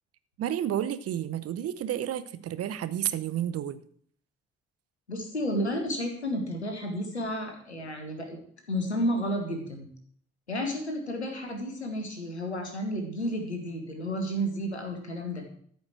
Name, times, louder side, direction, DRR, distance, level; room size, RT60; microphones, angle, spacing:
voice 1, 0.4-3.8, right 11 dB, 45° right, 14 dB, 0.8 m, -31 dB
voice 2, 5.1-8.4 8.7-9.9 10.5-15.4, equal, 85° left, 4 dB, 1.4 m, -31 dB
13.5 x 5.3 x 7.6 m, 0.62 s
figure-of-eight pair, 40°, 32 cm